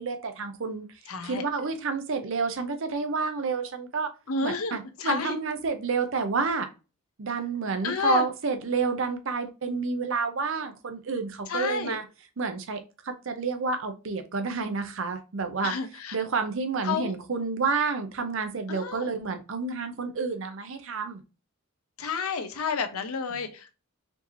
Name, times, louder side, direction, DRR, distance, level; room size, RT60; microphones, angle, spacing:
voice 1, 0.0-4.1 4.4-6.7 7.2-12.0 12.4-15.8 16.1-21.2, right 4 dB, 60° right, 8 dB, 0.6 m, -29 dB
voice 2, 1.1-1.4 4.3-5.4 7.8-8.3 11.5-12.0 15.6-16.1 16.8-17.1 18.7-19.1 22.0-23.7, left 5 dB, 80° left, 8 dB, 0.7 m, -30 dB
4.4 x 2.7 x 3.0 m, 0.31 s
head